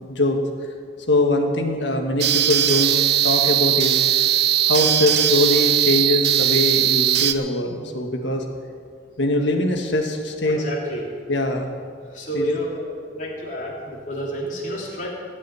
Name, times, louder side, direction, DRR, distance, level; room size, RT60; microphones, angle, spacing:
voice 1, 0.1-0.4 1.1-3.0 3.2-4.0 4.6-8.4 9.2-10.6 11.3-11.7 12.3-12.5, left 2 dB, 75° left, 3 dB, 1.8 m, -22 dB
sound 1, 2.2-7.3, right 11 dB, 60° right, 0.7 m, -19 dB
voice 2, 10.4-11.1 12.1-12.8 13.1-15.1, equal, 45° left, -4 dB, 3.1 m, -29 dB
17.0 x 6.4 x 9.8 m, 2.2 s
head